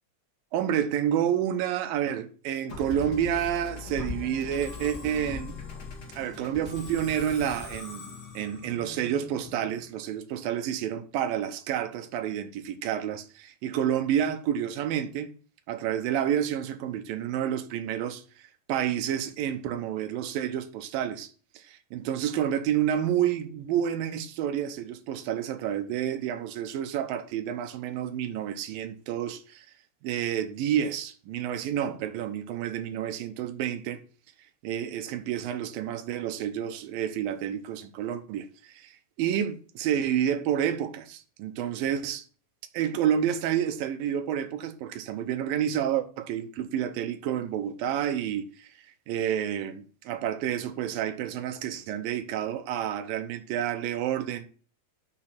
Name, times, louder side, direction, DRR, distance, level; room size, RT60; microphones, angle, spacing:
voice 1, 0.5-5.5 6.2-15.3 15.7-29.7 30.0-34.0 34.6-42.2 42.7-48.7 49.1-54.5, right 10 dB, 80° right, 2.4 m, -29 dB
Musical instrument, 2.7-10.0, left 4 dB, 40° left, 1.5 m, -40 dB
6.4 x 6.1 x 5.9 m
omnidirectional pair, 4.3 m